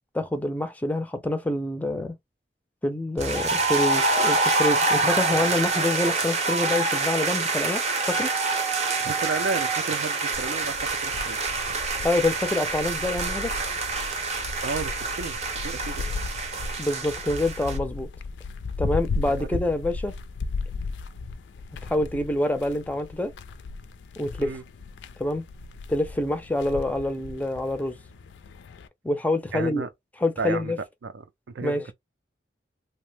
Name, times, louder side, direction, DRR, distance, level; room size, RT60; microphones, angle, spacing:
voice 1, 0.1-2.1 2.8-8.3 12.0-13.5 16.8-18.1 18.8-20.1 21.8-23.3 24.2-24.5 25.2-25.4 25.9-27.9 29.0-29.9 30.2-30.8 31.6-31.8, left 1 dB, 10° left, 0.4 m, -26 dB
sound 1, 3.2-17.8, right 3 dB, 40° right, 0.6 m, -26 dB
voice 2, 9.0-11.4 14.6-15.4 15.6-16.0 19.3-19.6 24.4-24.6 29.5-29.9 30.4-30.7 31.0-31.9, right 4 dB, 85° right, 0.4 m, -32 dB
sound 2, 10.3-28.9, left 3 dB, 85° left, 0.4 m, -36 dB
2.8 x 2.1 x 3.1 m
head